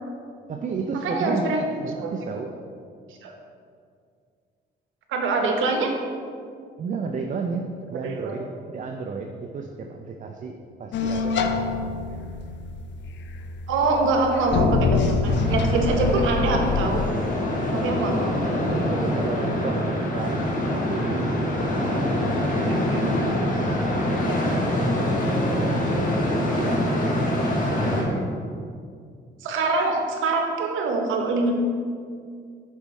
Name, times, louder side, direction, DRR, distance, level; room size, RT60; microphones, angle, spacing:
voice 1, 0.5-2.5 6.8-11.9 18.1-18.2 18.7-21.5 21.8-22.1 22.4-23.4 24.1-27.1 27.8-28.4, right 4 dB, 40° right, 3 dB, 0.5 m, -33 dB
voice 2, 1.0-1.6 2.0-2.1 3.2-3.3 5.1-5.9 7.9-8.4 13.7-17.0 17.7-18.4 22.7-23.1 29.4-31.5, right 3 dB, 80° right, 3 dB, 0.9 m, -24 dB
sound 1, 10.9-17.1, left 5 dB, 65° left, 0.5 m, -26 dB
sound 2, 15.2-28.0, left 1 dB, 40° left, 1.3 m, -25 dB
6.7 x 5.3 x 3.1 m, 2.2 s
cardioid pair, 90°, 20 cm